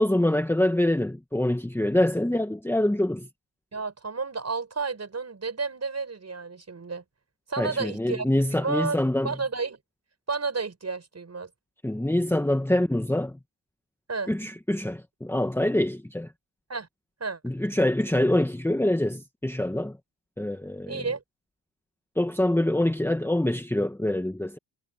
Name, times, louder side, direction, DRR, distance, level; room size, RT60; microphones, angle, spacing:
voice 1, 0.0-3.3 7.6-9.3 11.8-13.4 14.3-16.3 17.4-20.0 20.4-21.0 22.1-24.6, left 1 dB, 5° left, 1.5 m, -25 dB
voice 2, 3.7-7.0 7.5-8.2 8.5-9.0 9.2-9.8 10.3-11.5 14.1-14.3 16.7-16.9 17.2-17.4 20.9-21.2, right 4 dB, 35° right, 6.6 m, -31 dB
cardioid pair, 80°, 45 cm